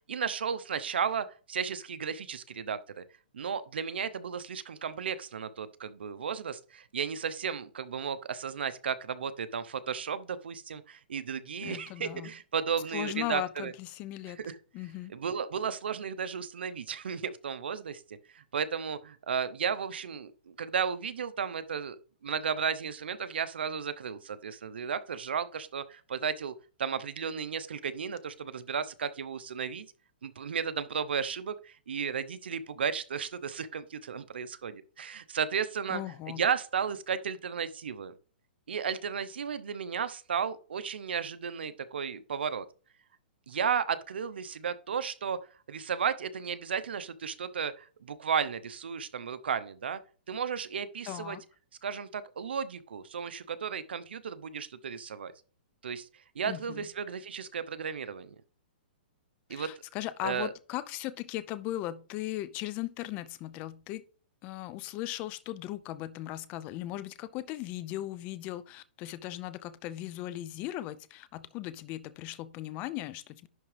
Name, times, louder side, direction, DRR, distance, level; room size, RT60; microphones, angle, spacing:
voice 1, 0.1-3.0 3.3-13.7 14.4-14.6 15.1-18.0 18.3-22.0 22.2-26.5 26.8-29.9 30.2-36.0 36.4-38.1 38.7-42.6 43.5-45.4 45.7-50.0 50.3-51.4 51.8-55.3 55.8-56.1 56.3-58.3 59.5-59.7 60.2-60.5, right 7 dB, 85° right, 0.8 m, -34 dB
voice 2, 11.6-12.3 12.9-14.4 14.7-15.1 35.9-36.4 51.1-51.4 56.4-56.9 59.5-64.0 64.4-73.5, left 15 dB, 30° left, 0.6 m, -38 dB
11.0 x 3.6 x 3.4 m
hypercardioid pair, 155°, 6 cm